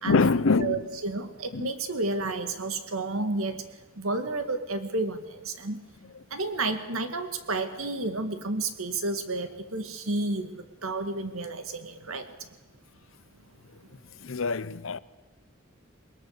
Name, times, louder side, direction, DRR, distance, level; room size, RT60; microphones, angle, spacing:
voice 1, 0.0-0.8 1.5-1.7 14.2-15.0, left 4 dB, 65° left, 0.8 m, -24 dB
voice 2, 0.5-5.8 6.3-12.5, right 2 dB, 85° right, 2.1 m, -31 dB
22.0 x 21.0 x 6.7 m
head